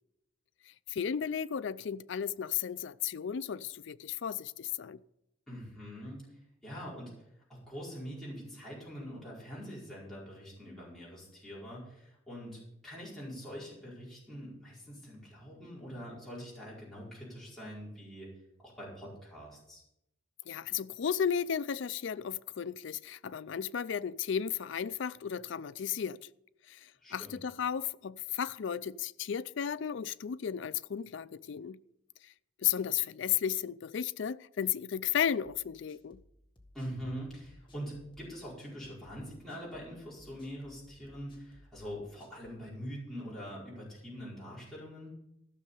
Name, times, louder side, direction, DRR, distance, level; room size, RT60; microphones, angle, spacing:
voice 1, 0.9-5.0 20.5-26.2 26.7-31.8 32.6-36.2, left 8 dB, 65° left, 0.4 m, -34 dB
voice 2, 5.5-6.2 6.6-7.1 7.5-18.3 18.6-19.8 27.0-27.4 36.7-45.1, equal, ahead, 4.7 m, -44 dB
sound 1, 35.4-42.6, left 1 dB, 25° left, 1.8 m, -60 dB
15.0 x 6.5 x 6.9 m
head